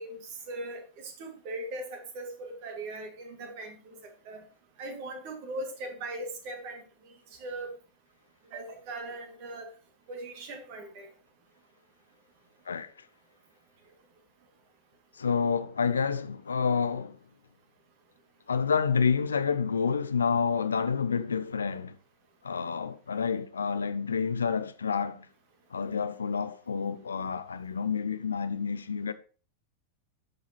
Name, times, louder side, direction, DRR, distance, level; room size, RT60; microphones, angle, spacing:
voice 1, 0.0-4.0 4.2-4.4 4.8-7.1 7.4-7.7 8.5-9.7 10.1-11.1, right 2 dB, 45° right, 2.1 m, -39 dB
voice 2, 15.2-17.2 18.5-21.9 22.4-25.3 25.7-29.1, left 6 dB, 70° left, 0.5 m, -29 dB
12.5 x 4.8 x 2.9 m
figure-of-eight pair, 90°, 0 cm